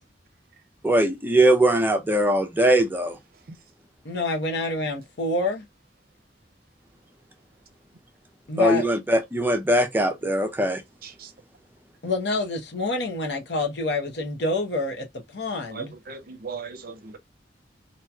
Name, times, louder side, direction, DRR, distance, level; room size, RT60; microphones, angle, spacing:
voice 1, 0.8-3.2 8.6-10.8, right 1 dB, 10° right, 0.5 m, -21 dB
voice 2, 4.0-5.6 8.5-8.9 12.0-15.9, left 2 dB, 70° left, 0.9 m, -27 dB
voice 3, 15.7-17.2, right 5 dB, 55° right, 0.6 m, -38 dB
2.8 x 2.8 x 2.2 m
head